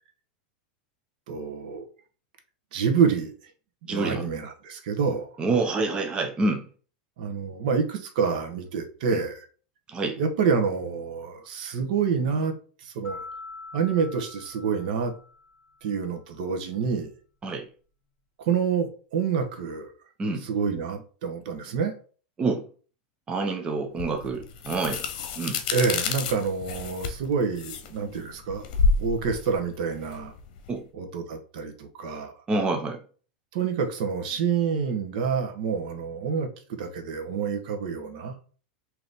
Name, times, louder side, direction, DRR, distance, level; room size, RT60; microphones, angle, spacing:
voice 1, 1.3-1.8 2.7-3.3 3.9-5.3 7.2-9.5 10.2-12.5 12.8-13.2 13.7-15.1 15.8-17.1 18.4-19.9 20.4-21.9 25.7-28.6 29.0-30.3 30.9-32.3 33.5-38.3, right 6 dB, 65° right, 5 dB, 0.9 m, -27 dB
voice 2, 3.9-4.2 5.4-6.7 9.1-9.2 9.9-10.2 17.4-17.6 20.2-20.4 22.4-22.6 23.3-25.0 25.4-25.6 30.7-30.8 32.5-33.0, right 3 dB, 20° right, 3 dB, 0.6 m, -27 dB
sound 1, 13.0-15.8, left 3 dB, 25° left, 1.6 m, -43 dB
sound 2, 24.0-30.8, left 4 dB, 60° left, 0.8 m, -29 dB
3.9 x 2.9 x 3.4 m, 0.40 s
supercardioid pair, 140°, 5 cm